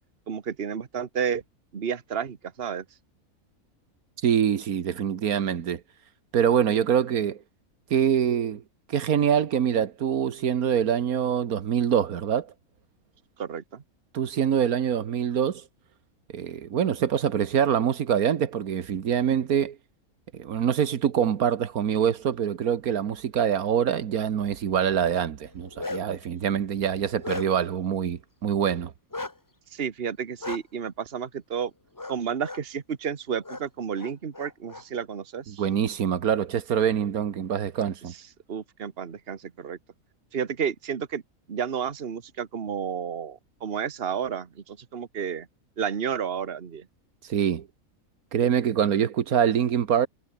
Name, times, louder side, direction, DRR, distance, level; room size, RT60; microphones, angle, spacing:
voice 1, 0.3-1.4 1.7-2.8 13.4-13.8 29.7-31.7 32.1-35.6 38.1-38.2 38.5-39.8 40.3-41.2 41.5-45.5 45.8-46.9, right 7 dB, 45° right, 1.5 m, -31 dB
voice 2, 4.2-5.8 6.3-7.4 7.9-8.6 8.9-12.5 14.1-15.6 16.3-19.8 20.3-28.9 35.5-38.1 47.3-47.7 48.3-50.1, right 8 dB, 85° right, 1.6 m, -25 dB
Bark, 25.5-26.2 26.7-27.8 29.1-29.3 30.4-30.6 32.0-32.2 32.4-32.6 33.4-33.6 34.0-34.8, left 2 dB, 15° left, 1.0 m, -36 dB
omnidirectional pair, 1.5 m